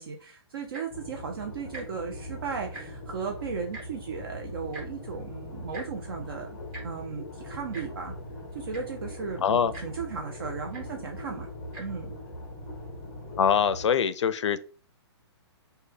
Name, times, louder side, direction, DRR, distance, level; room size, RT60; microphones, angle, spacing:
voice 1, 0.0-6.5 6.8-8.1 8.5-11.5 11.8-12.1, right 5 dB, 55° right, 0.5 m, -36 dB
Tick-tock, 0.6-1.0 1.7-1.8 2.2-2.3 2.6-3.1 3.7-3.8 4.7-4.9 5.7-5.9 6.7-6.8 7.7-7.9 8.4-8.5 8.7-9.0 9.7-9.9 10.7-10.8 11.6-11.8 12.5-12.6, right 2 dB, 20° right, 0.8 m, -41 dB
sound 1, 0.9-13.9, left 1 dB, 10° left, 0.5 m, -41 dB
voice 2, 9.4-9.7 13.4-14.6, left 7 dB, 85° left, 0.4 m, -23 dB
3.3 x 2.2 x 3.3 m
hypercardioid pair, 170°, 15 cm